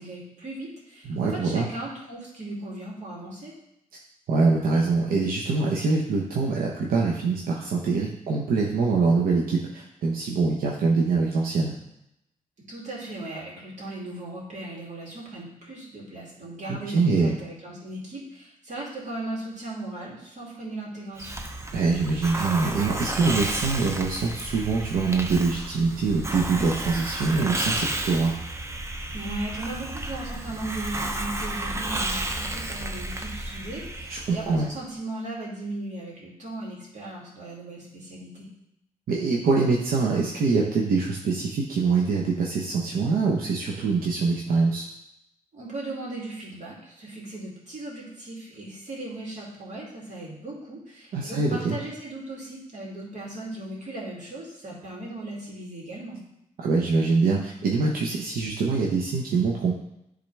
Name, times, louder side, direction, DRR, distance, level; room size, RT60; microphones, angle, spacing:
voice 1, 0.0-3.5 12.7-21.4 29.1-38.5 45.5-56.2, right 2 dB, 55° right, -4 dB, 2.7 m, -37 dB
voice 2, 1.0-1.7 4.3-11.7 16.7-17.3 21.7-28.4 34.1-34.7 39.1-44.9 51.1-51.8 56.6-59.7, right 4 dB, 90° right, -2 dB, 0.9 m, -24 dB
Hiss, 21.2-34.7, right 1 dB, 20° right, 0.7 m, -32 dB
10.5 x 3.8 x 3.4 m, 0.83 s
cardioid pair, 85°, 15 cm